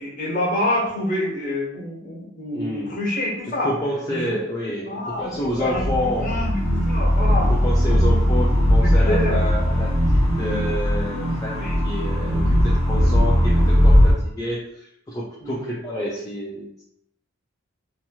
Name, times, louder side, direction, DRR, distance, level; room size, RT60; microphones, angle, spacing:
voice 1, 0.0-3.7 4.1-4.2 4.9-5.3 5.6-7.5 8.8-9.4 11.5-11.8 13.0-13.1 15.4-15.6, left 1 dB, 40° left, -5 dB, 1.0 m, -27 dB
voice 2, 2.5-3.1 3.5-6.4 7.1-16.8, left 1 dB, 15° left, -5 dB, 0.3 m, -29 dB
sound 1, 5.4-14.1, equal, 60° right, 1.3 m, -19 dB
2.8 x 2.8 x 2.3 m, 0.72 s
head